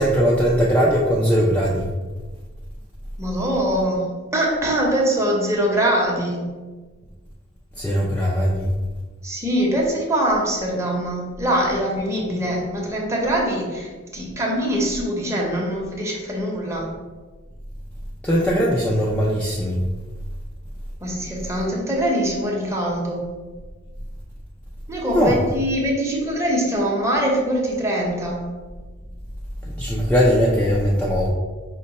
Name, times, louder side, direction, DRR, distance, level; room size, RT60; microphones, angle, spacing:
voice 1, 0.0-1.9 7.8-8.7 18.2-19.8 25.1-25.4 29.8-31.3, equal, 5° left, -4 dB, 0.3 m, -19 dB
voice 2, 3.2-6.4 9.2-16.9 21.0-23.2 24.9-28.4, right 1 dB, 15° right, -2 dB, 0.8 m, -23 dB
5.1 x 2.1 x 4.0 m, 1.3 s
head